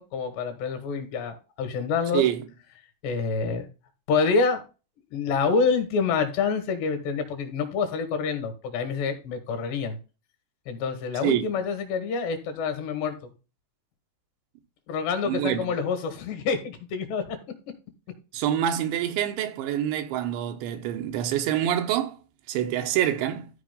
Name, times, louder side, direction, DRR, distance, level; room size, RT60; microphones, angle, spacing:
voice 1, 0.0-2.2 3.0-3.7 4.1-4.6 5.1-10.0 10.7-13.2 14.9-17.4, left 5 dB, 75° left, 4.0 m, -27 dB
voice 2, 2.1-2.4 11.2-11.5 15.3-15.7 18.3-22.2 22.5-23.5, right 11 dB, 90° right, 3.4 m, -26 dB
13.5 x 5.0 x 3.7 m
omnidirectional pair, 5.0 m